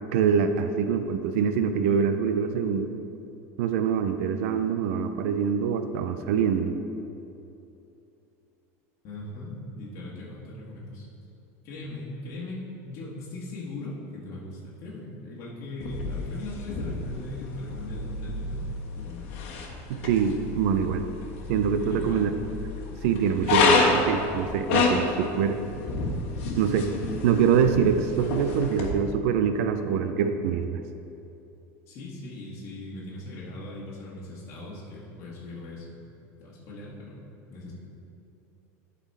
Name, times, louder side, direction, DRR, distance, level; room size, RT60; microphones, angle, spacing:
voice 1, 0.1-2.9 3.6-6.8 19.9-21.0 21.5-22.3 23.0-25.6 26.6-26.9 27.2-30.8, right 7 dB, 70° right, 8 dB, 0.5 m, -24 dB
voice 2, 9.0-11.0 11.6-12.6 12.8-18.6 18.9-19.3 21.8-22.2 31.9-35.8 36.4-37.2 37.5-37.7, left 2 dB, 40° left, -6 dB, 1.5 m, -39 dB
sound 1, 15.8-28.9, left 3 dB, 65° left, 1.3 m, -29 dB
11.0 x 4.1 x 4.2 m, 2.8 s
supercardioid pair, 165°, 8 cm